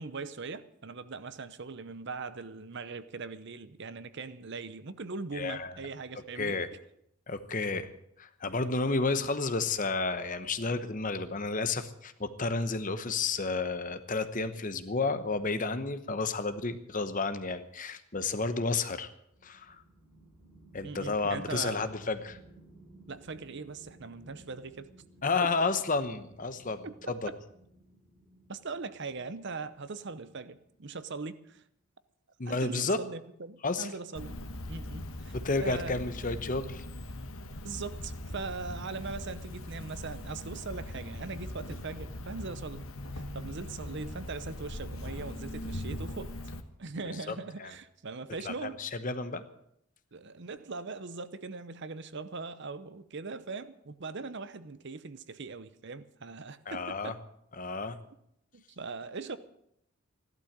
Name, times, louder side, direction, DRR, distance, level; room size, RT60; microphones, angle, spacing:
voice 1, 0.0-6.6 20.8-21.9 23.1-24.9 25.4-25.5 26.8-27.1 28.5-31.6 32.5-34.4 34.7-36.0 37.6-42.8 43.1-46.3 46.8-48.8 50.1-57.2 58.5-59.4, right 4 dB, 55° right, 14 dB, 0.8 m, -40 dB
voice 2, 5.3-5.8 6.4-6.7 7.3-7.9 8.2-19.1 19.4-19.8 20.7-22.4 25.2-27.3 32.4-33.0 33.6-33.9 35.3-36.9 47.0-47.7 48.4-49.4 56.7-57.1 57.5-58.0, left 3 dB, 35° left, 11 dB, 1.0 m, -31 dB
sound 1, 19.3-31.4, right 2 dB, 5° right, 3.9 m, -58 dB
Cricket, 34.1-46.6, left 1 dB, 70° left, 1.3 m, -40 dB
14.5 x 12.0 x 7.4 m, 0.74 s
head